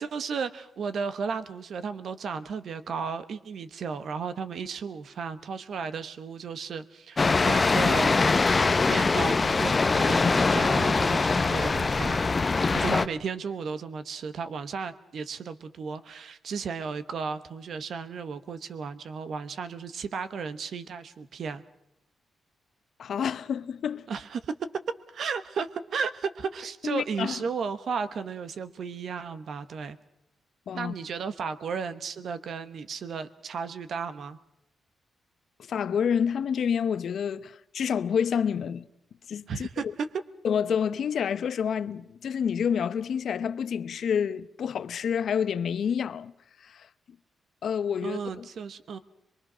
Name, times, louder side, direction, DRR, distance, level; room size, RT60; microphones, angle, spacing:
voice 1, 0.0-8.2 8.9-12.3 12.7-21.6 24.1-24.5 25.1-30.0 30.7-34.4 39.5-40.1 48.0-49.0, right 5 dB, 60° right, 0.9 m, -34 dB
sound 1, 7.2-13.1, left 4 dB, 25° left, 0.8 m, -23 dB
voice 2, 23.0-24.1 26.9-27.4 30.7-30.9 35.6-38.8 39.3-39.7 40.4-46.3 46.6-46.9 47.6-48.5, left 7 dB, 65° left, 0.8 m, -28 dB
24.0 x 22.5 x 6.1 m
wide cardioid pair, 140°, 0 cm